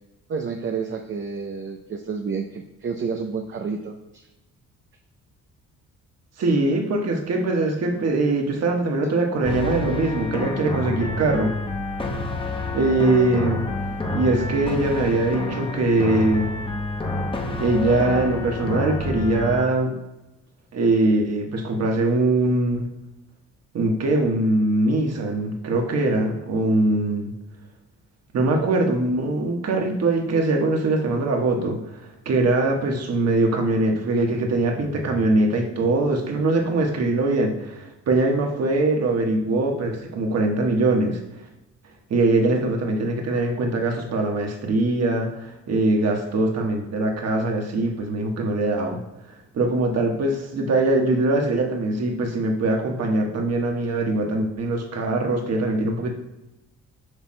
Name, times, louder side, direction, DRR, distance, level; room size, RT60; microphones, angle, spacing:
voice 1, 0.3-4.3 9.0-9.1, right 5 dB, 40° right, 4 dB, 0.6 m, -30 dB
voice 2, 6.4-11.5 12.7-13.7 14.1-16.5 17.6-19.9 20.7-22.9 23.7-27.3 28.3-41.2 42.1-49.0 49.5-56.1, right 2 dB, 55° right, 2 dB, 1.4 m, -22 dB
sound 1, 9.4-19.7, left 2 dB, 15° left, 0.8 m, -28 dB
8.0 x 5.8 x 2.2 m, 0.98 s
cardioid pair, 90°, 30 cm